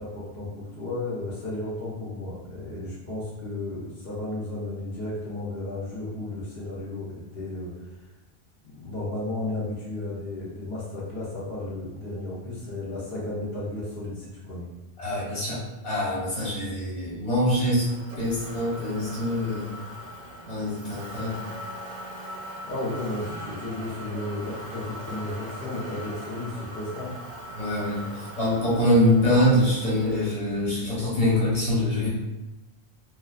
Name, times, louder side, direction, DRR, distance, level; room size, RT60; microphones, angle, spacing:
voice 1, 0.0-7.7 8.6-14.7 22.7-27.1, left 2 dB, 75° left, -6 dB, 0.9 m, -33 dB
voice 2, 15.0-17.9 18.2-19.7 20.5-21.4 27.5-32.1, left 1 dB, 35° left, -8 dB, 1.0 m, -24 dB
Motor vehicle (road), 17.8-30.3, equal, 55° right, 0.6 m, -40 dB
2.3 x 2.3 x 2.3 m, 1.0 s
omnidirectional pair, 1.1 m